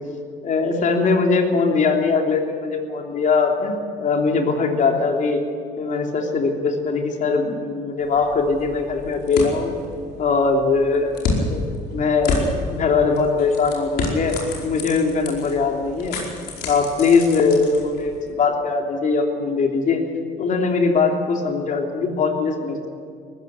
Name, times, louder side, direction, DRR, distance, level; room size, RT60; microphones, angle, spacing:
voice 1, 0.4-5.4 5.8-9.8 10.2-11.6 11.9-14.4 14.6-16.2 16.6-20.0 20.4-22.9, left 4 dB, 50° left, 3 dB, 3.3 m, -21 dB
sound 1, 8.0-18.3, left 3 dB, 75° left, 5.0 m, -30 dB
19.0 x 15.0 x 9.9 m, 2.2 s
cardioid pair, 110°, 17 cm